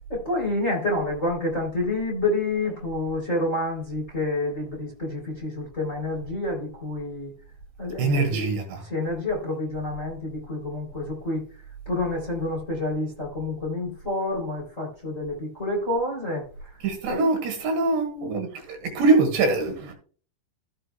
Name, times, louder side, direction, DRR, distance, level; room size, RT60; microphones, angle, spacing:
voice 1, 0.1-7.3 7.8-8.5 8.8-11.4 11.8-17.2, left 2 dB, 20° left, 2.6 m, -28 dB
voice 2, 8.0-8.8 16.8-19.9, right 3 dB, 65° right, 3.7 m, -23 dB
15.0 x 7.5 x 2.2 m
omnidirectional pair, 5.7 m